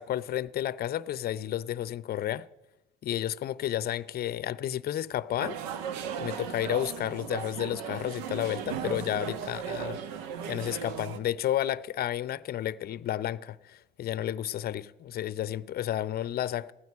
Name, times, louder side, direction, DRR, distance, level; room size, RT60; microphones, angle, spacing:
voice 1, 0.0-2.5 3.0-5.6 6.2-10.0 10.5-16.7, left 12 dB, 50° left, 0.6 m, -31 dB
sound 1, 5.4-11.2, right 8 dB, 75° right, 1.1 m, -36 dB
15.0 x 9.3 x 9.5 m
hypercardioid pair, 65°, 21 cm